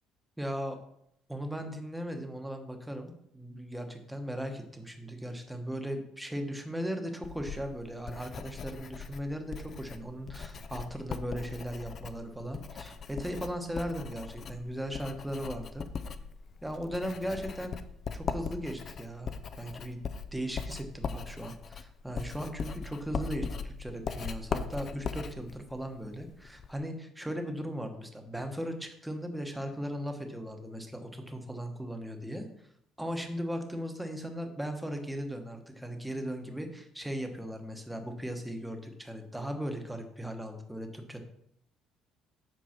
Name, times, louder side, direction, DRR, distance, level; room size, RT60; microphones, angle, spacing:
voice 1, 0.4-0.8 1.3-15.8 16.6-17.7 18.1-20.0 20.3-32.5 33.0-41.2, equal, 5° right, 4 dB, 1.1 m, -37 dB
Writing, 7.2-26.8, left 6 dB, 40° left, 0.5 m, -40 dB
7.7 x 4.7 x 5.8 m, 0.74 s
cardioid pair, 135°, 0 cm